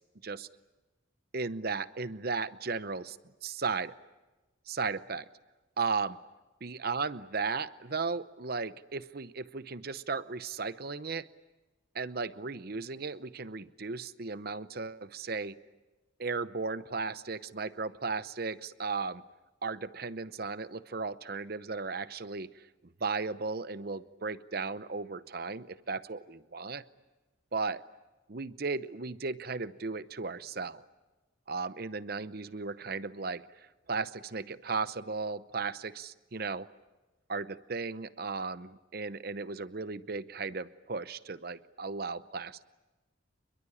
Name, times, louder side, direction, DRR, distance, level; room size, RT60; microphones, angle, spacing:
voice 1, 1.3-3.2 3.4-3.9 4.7-5.3 5.8-6.2 6.6-11.3 11.9-15.6 16.2-19.2 19.6-22.7 23.0-26.8 27.5-27.8 28.3-30.8 31.5-36.7 37.3-42.6, right 4 dB, 50° right, 14 dB, 0.8 m, -35 dB
27.5 x 22.0 x 8.7 m, 1.1 s
head